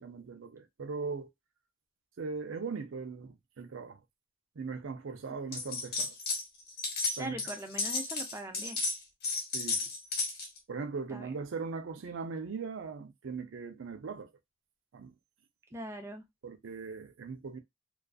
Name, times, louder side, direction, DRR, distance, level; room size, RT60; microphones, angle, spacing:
voice 1, 0.0-1.3 2.2-4.0 4.6-6.2 7.2-7.4 9.5-9.9 10.7-14.3 14.9-15.2 16.4-17.6, right 4 dB, 80° right, 0.5 m, -39 dB
sound 1, 5.5-6.4 6.7-10.6, left 4 dB, 55° left, 0.8 m, -33 dB
voice 2, 7.2-8.8 11.1-11.3 15.7-16.3, right 1 dB, 15° right, 0.5 m, -41 dB
2.4 x 2.4 x 2.3 m
head